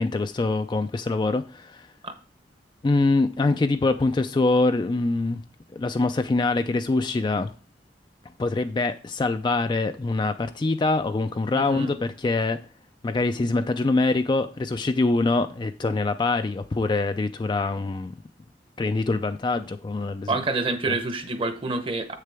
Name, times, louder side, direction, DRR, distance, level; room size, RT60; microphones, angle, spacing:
voice 1, 0.0-1.9 2.8-5.4 5.7-7.5 8.4-12.6 13.0-18.1 18.8-20.4 20.9-21.0, left 3 dB, 25° left, 0.3 m, -24 dB
voice 2, 11.5-11.9 20.3-22.2, right 3 dB, 30° right, 0.9 m, -27 dB
7.5 x 6.6 x 3.4 m
head